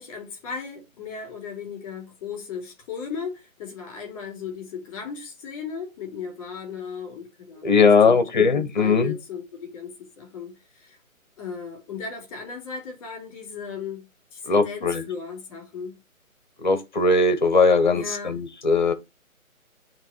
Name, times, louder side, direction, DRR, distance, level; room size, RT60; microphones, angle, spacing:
voice 1, 0.0-7.7 8.0-11.0 11.4-15.9 17.9-18.4, left 6 dB, 15° left, 3.1 m, -36 dB
voice 2, 7.6-9.1 14.5-15.0 16.6-18.9, left 4 dB, 35° left, 1.2 m, -19 dB
10.0 x 3.4 x 4.5 m
hypercardioid pair, 170°, 42 cm